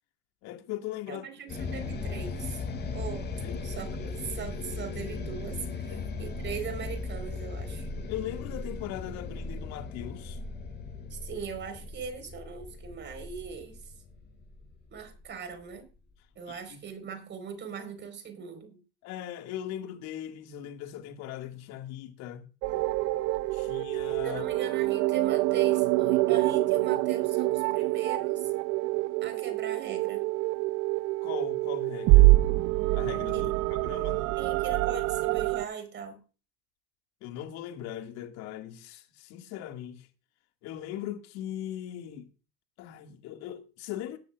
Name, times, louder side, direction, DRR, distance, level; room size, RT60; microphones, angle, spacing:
voice 1, 0.4-1.2 3.4-3.7 5.9-6.1 8.1-10.4 16.5-16.8 19.0-22.4 23.5-24.4 31.2-32.3 32.9-34.4 37.2-40.1 40.6-42.3 42.8-44.2, left 11 dB, 60° left, 2.1 m, -39 dB
voice 2, 1.1-2.6 2.9-3.3 3.6-7.9 11.1-13.9 14.9-15.9 16.3-18.8 24.2-28.5 29.2-30.3 33.3-33.5 34.3-36.2, right 6 dB, 35° right, 4.5 m, -40 dB
sound 1, 1.5-15.8, left 3 dB, 35° left, 6.6 m, -37 dB
sound 2, 22.6-35.6, right 20 dB, 55° right, 0.7 m, -26 dB
17.5 x 13.0 x 2.5 m
hypercardioid pair, 90°, 31 cm